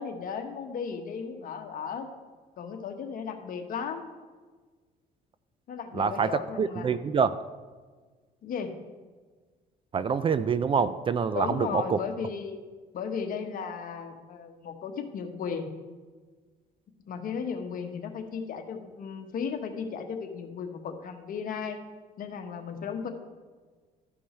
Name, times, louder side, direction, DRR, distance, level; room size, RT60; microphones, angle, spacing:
voice 1, 0.0-2.1 2.6-4.1 5.7-6.9 8.4-8.8 11.3-12.6 12.9-15.7 17.0-21.8 22.2-23.1, left 6 dB, 55° left, 5 dB, 1.1 m, -35 dB
voice 2, 5.9-6.3 6.6-7.4 9.9-12.0, right 6 dB, 30° right, 14 dB, 0.3 m, -26 dB
13.0 x 5.3 x 4.4 m, 1.4 s
cardioid pair, 110°, 17 cm